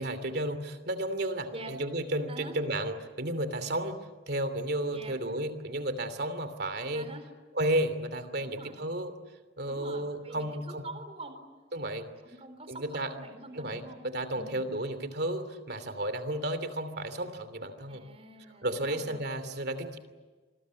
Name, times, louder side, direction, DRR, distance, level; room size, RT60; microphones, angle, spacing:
voice 1, 0.0-7.1 7.5-9.1 9.6-10.9 11.7-12.1 12.7-13.1 13.5-18.0 18.6-20.0, right 1 dB, 50° right, 10 dB, 2.9 m, -33 dB
voice 2, 8.4-8.8 9.7-11.4 12.2-14.0 14.4-14.7 17.9-19.2, right 2 dB, 30° right, 7 dB, 4.1 m, -45 dB
28.0 x 20.5 x 9.6 m, 1.3 s
head